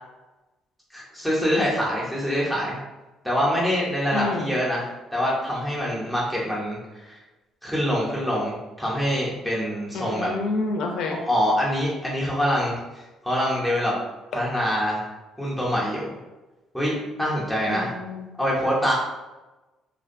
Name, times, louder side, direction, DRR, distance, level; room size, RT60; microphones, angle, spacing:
voice 1, 0.9-2.8 3.2-4.9 5.1-6.8 7.6-10.3 11.1-12.8 13.2-13.9 14.3-15.0 15.4-16.2 16.7-17.9 18.4-18.9, equal, ahead, -6 dB, 0.6 m, -25 dB
voice 2, 4.1-4.5 9.9-11.2 17.7-18.3, left 3 dB, 70° left, 2 dB, 0.4 m, -28 dB
2.5 x 2.1 x 2.5 m, 1.1 s
cardioid pair, 130°, 0 cm